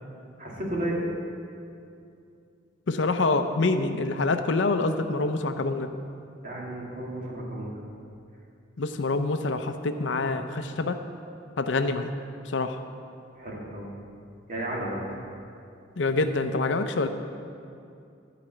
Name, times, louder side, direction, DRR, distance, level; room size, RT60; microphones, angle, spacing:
voice 1, 0.4-1.0 6.4-7.7 13.3-13.9 14.5-15.2, right 1 dB, 45° right, -3 dB, 2.2 m, -33 dB
voice 2, 2.9-5.9 8.8-11.0 11.6-12.1 12.4-12.8 16.0-17.1, left 3 dB, 75° left, 8 dB, 0.6 m, -26 dB
13.0 x 5.1 x 7.8 m, 2.5 s
head